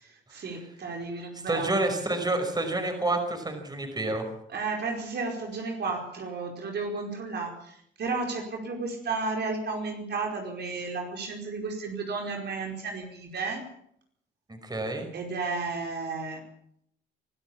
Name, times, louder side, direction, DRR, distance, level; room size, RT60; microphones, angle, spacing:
voice 1, 0.0-1.7 4.5-13.6 15.1-16.4, right 4 dB, 55° right, 2 dB, 4.9 m, -33 dB
voice 2, 1.5-4.3 14.5-15.1, right 2 dB, 20° right, 5 dB, 5.5 m, -28 dB
23.5 x 13.0 x 8.5 m, 0.71 s
cardioid pair, 90°, 20 cm